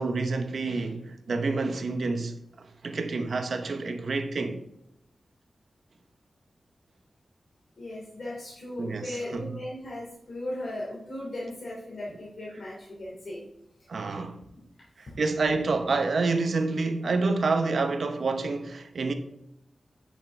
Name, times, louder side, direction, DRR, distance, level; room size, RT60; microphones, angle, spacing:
voice 1, 0.0-4.6 8.8-9.5 13.9-14.4 15.0-19.1, right 3 dB, 65° right, 0.8 m, -28 dB
voice 2, 7.8-13.4 14.5-14.6, left 1 dB, 55° left, 2.8 m, -37 dB
10.5 x 6.4 x 3.3 m
wide cardioid pair, 120°, 0 cm